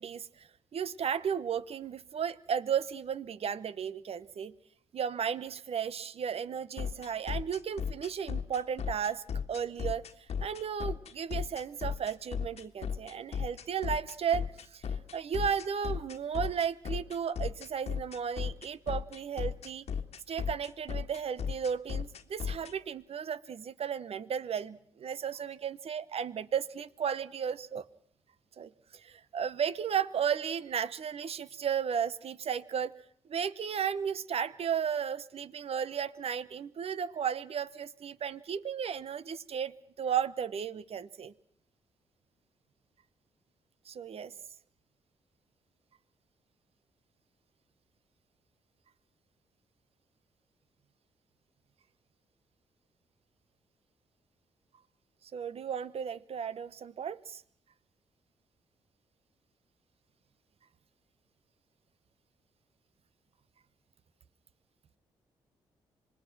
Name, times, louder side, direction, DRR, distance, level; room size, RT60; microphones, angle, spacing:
voice 1, 0.0-4.5 4.9-10.0 10.4-14.8 15.1-19.8 20.3-27.8 28.6-32.9 33.3-41.3 43.9-44.3 55.3-57.4, right 7 dB, 60° right, 16 dB, 1.0 m, -34 dB
sound 1, 6.8-22.7, left 7 dB, 65° left, 1.5 m, -35 dB
26.0 x 20.0 x 6.1 m, 0.63 s
supercardioid pair, 55°, 12 cm